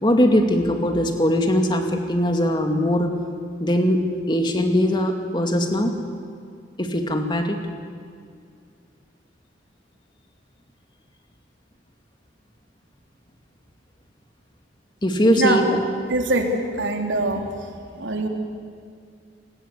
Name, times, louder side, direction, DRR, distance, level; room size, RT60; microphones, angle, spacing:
voice 1, 0.0-3.1 3.6-5.9 6.8-7.6 15.0-15.8, equal, 25° left, 4 dB, 2.3 m, -20 dB
voice 2, 15.2-15.6 16.1-17.7 18.0-18.3, right 2 dB, 75° right, 3 dB, 3.3 m, -23 dB
27.0 x 20.5 x 8.4 m, 2.3 s
head